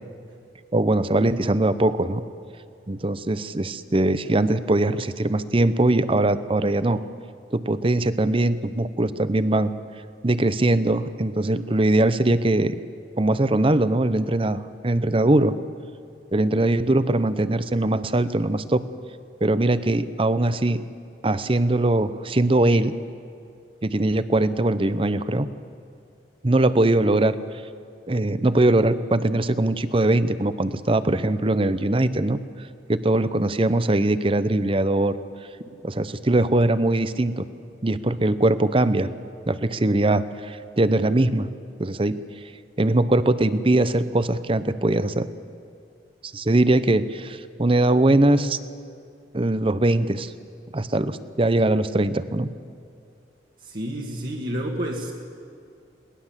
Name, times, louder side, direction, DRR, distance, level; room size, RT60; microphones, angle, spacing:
voice 1, 0.7-2.2 2.9-7.0 7.5-9.7 10.2-12.7 13.2-15.5 16.3-18.8 19.4-20.8 21.2-22.9 23.8-25.5 26.4-27.3 28.1-32.4 32.9-35.1 35.8-37.5 37.8-39.1 39.5-41.5 41.8-42.2 42.8-45.3 46.3-48.6 49.3-50.3 50.7-52.5, right 2 dB, 30° right, 14 dB, 0.8 m, -21 dB
voice 2, 53.6-55.1, right 1 dB, 55° right, -2 dB, 2.1 m, -29 dB
21.5 x 18.5 x 7.5 m, 2.4 s
head